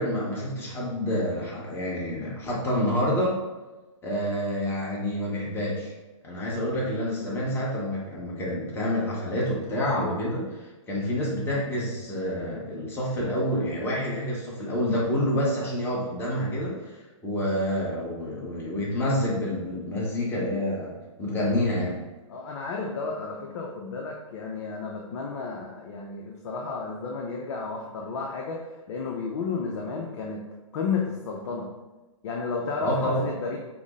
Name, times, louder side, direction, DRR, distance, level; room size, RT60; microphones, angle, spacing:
voice 1, 0.0-3.4 4.0-5.9 6.2-20.9 21.2-22.0 32.8-33.3, left 1 dB, 15° left, -4 dB, 1.0 m, -28 dB
voice 2, 22.3-30.4 30.7-31.7 32.2-33.6, left 4 dB, 60° left, -1 dB, 0.7 m, -32 dB
5.9 x 2.1 x 3.6 m, 1.2 s
hypercardioid pair, 140°, 17 cm